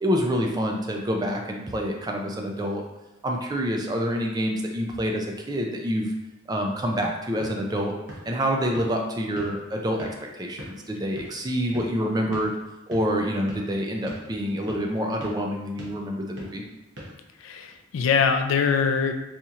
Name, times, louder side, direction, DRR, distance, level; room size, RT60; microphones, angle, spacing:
voice 1, 0.0-2.8 3.2-6.1 6.5-7.9 8.3-10.1 10.3-12.6 12.9-16.6, equal, 20° right, 1 dB, 0.4 m, -27 dB
sound 1, 7.1-17.9, equal, 60° right, 0.9 m, -45 dB
voice 2, 17.4-19.1, left 6 dB, 75° left, 6 dB, 0.3 m, -23 dB
4.2 x 2.8 x 2.4 m, 0.99 s
head